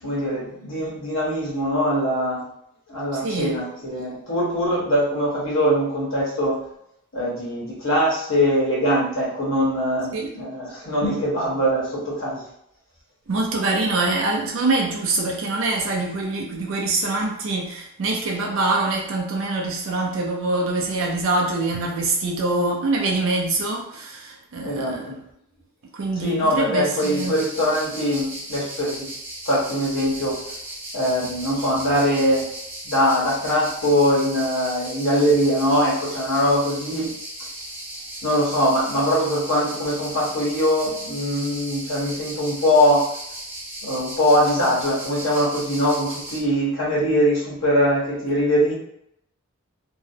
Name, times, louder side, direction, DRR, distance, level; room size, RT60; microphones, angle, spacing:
voice 1, 0.0-2.4 2.9-6.6 7.1-12.4 24.6-25.2 26.2-29.1 29.4-30.4 30.9-32.4 32.8-37.1 38.2-43.0 43.8-48.7, equal, 60° left, -6 dB, 1.1 m, -22 dB
voice 2, 3.1-3.6 10.1-10.3 13.3-25.1 25.9-27.4, right 2 dB, 60° right, 0 dB, 0.4 m, -24 dB
sound 1, 27.0-46.4, right 1 dB, 10° right, 0.6 m, -36 dB
2.7 x 2.0 x 2.6 m, 0.74 s
head